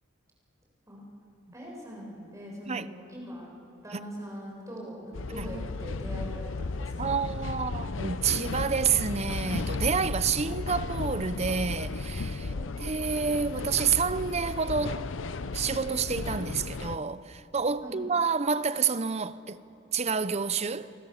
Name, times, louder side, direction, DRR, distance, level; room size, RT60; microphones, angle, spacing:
voice 1, 1.5-3.5 3.8-7.3 12.4-12.6 17.8-18.0, equal, 15° right, 6.4 m, -42 dB
sound 1, 5.1-17.0, left 3 dB, 65° left, 0.7 m, -34 dB
voice 2, 7.0-12.5 12.8-15.0 15.5-19.6 19.9-20.9, right 5 dB, 30° right, 0.7 m, -29 dB
29.5 x 25.5 x 7.3 m
head